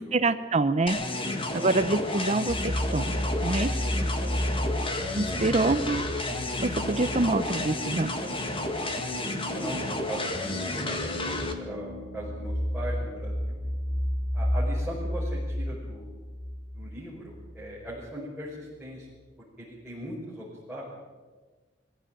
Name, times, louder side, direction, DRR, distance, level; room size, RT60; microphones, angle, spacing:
voice 1, 0.0-1.0 1.5-3.8 5.1-6.0 6.6-8.1, right 2 dB, 35° right, 11 dB, 0.7 m, -26 dB
sound 1, 0.9-11.5, left 2 dB, 25° left, 1.9 m, -31 dB
voice 2, 1.2-1.6 4.0-4.1 4.3-4.5 5.3-5.5 8.8-13.6 14.3-16.1 16.7-19.1 19.6-20.8, equal, 5° right, -7 dB, 5.2 m, -39 dB
sound 2, 2.5-18.0, equal, 45° left, 6.1 m, -33 dB
23.5 x 15.5 x 8.9 m, 1.4 s
head